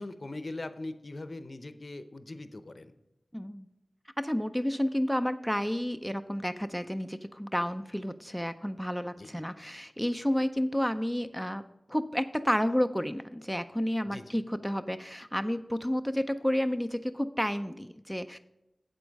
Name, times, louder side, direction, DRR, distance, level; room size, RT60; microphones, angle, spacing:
voice 1, 0.0-2.9 9.2-9.4 14.0-14.3, left 2 dB, 50° left, 11 dB, 0.7 m, -41 dB
voice 2, 3.3-3.7 4.2-18.4, equal, ahead, 10 dB, 0.4 m, -31 dB
8.0 x 8.0 x 5.2 m, 0.92 s
wide cardioid pair, 70°, 0 cm